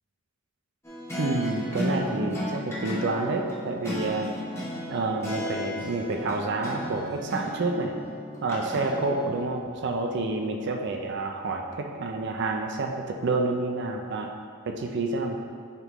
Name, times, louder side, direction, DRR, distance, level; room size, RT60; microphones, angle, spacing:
sound 1, 0.8-9.4, equal, 10° left, 0.9 m, -34 dB
voice 1, 1.2-4.3 4.9-7.9 8.4-14.3 14.6-15.4, right 3 dB, 55° right, 3 dB, 0.4 m, -29 dB
9.6 x 3.5 x 3.0 m, 2.1 s
head